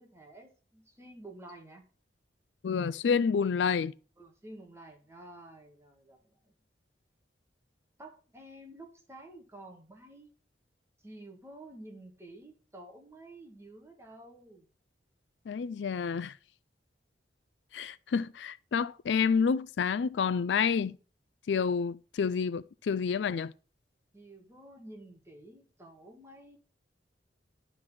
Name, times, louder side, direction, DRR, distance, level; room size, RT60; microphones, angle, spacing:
voice 1, 0.0-1.8 4.2-6.5 8.0-10.3 11.0-14.7 24.1-26.6, right 1 dB, 15° right, 1.5 m, -50 dB
voice 2, 2.6-3.9 15.5-16.4 17.7-21.0 21.5-23.5, left 6 dB, 85° left, 0.4 m, -29 dB
11.5 x 3.9 x 6.0 m
head